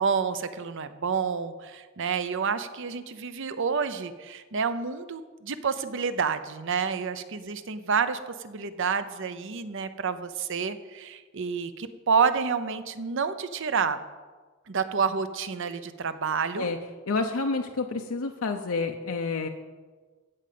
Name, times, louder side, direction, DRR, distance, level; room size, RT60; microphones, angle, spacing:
voice 1, 0.0-14.0 14.7-16.7, right 6 dB, 65° right, 11 dB, 0.7 m, -29 dB
voice 2, 17.1-19.5, left 3 dB, 85° left, 4 dB, 0.7 m, -29 dB
15.5 x 5.2 x 7.6 m, 1.4 s
head